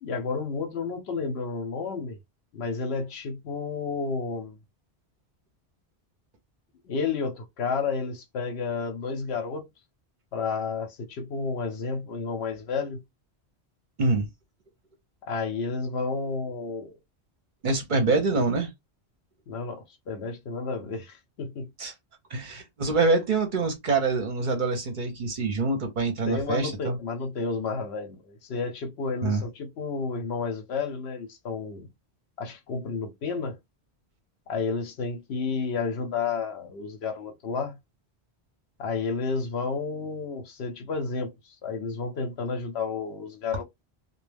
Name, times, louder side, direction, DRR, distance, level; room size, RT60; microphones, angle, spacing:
voice 1, 0.0-2.2 2.5-4.6 6.8-9.7 10.3-13.0 15.3-17.0 19.5-21.7 26.3-31.9 32.4-33.6 34.5-37.8 38.8-43.6, left 4 dB, 75° left, 0.9 m, -31 dB
voice 2, 17.6-18.7 21.8-21.9 22.3-27.0 29.2-29.4, right 3 dB, 55° right, 0.7 m, -25 dB
2.2 x 2.1 x 3.2 m
omnidirectional pair, 1.1 m